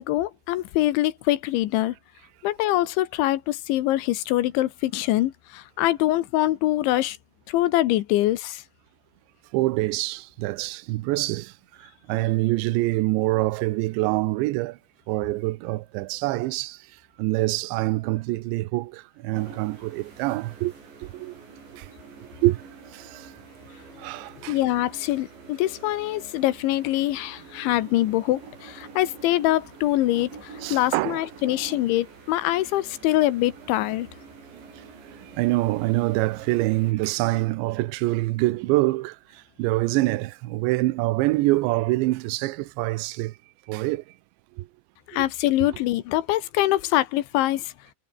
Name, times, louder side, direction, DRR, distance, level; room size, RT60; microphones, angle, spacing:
voice 1, 0.0-1.9 2.4-7.2 7.5-8.6 24.5-34.1 45.1-47.7, left 15 dB, 75° left, 3.4 m, -24 dB
voice 2, 9.5-11.5 11.8-14.8 15.1-16.8 17.2-20.7 21.0-21.3 21.7-21.9 22.4-22.6 22.9-23.3 24.0-24.6 30.6-31.2 35.2-43.3 43.7-44.0 44.6-44.7, right 19 dB, 80° right, 2.9 m, -25 dB
sound 1, 19.4-36.9, right 5 dB, 60° right, 9.3 m, -46 dB
omnidirectional pair, 5.8 m